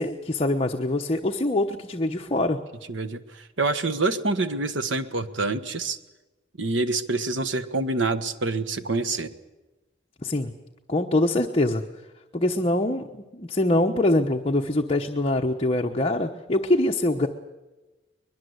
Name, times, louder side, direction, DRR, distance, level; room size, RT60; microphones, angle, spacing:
voice 1, 0.0-2.6 10.2-10.5 10.9-11.8 12.3-17.3, left 1 dB, 30° left, 3 dB, 1.0 m, -24 dB
voice 2, 2.9-6.0 6.6-9.3, right 3 dB, 70° right, 11 dB, 1.4 m, -26 dB
23.0 x 21.5 x 8.1 m, 1.1 s
head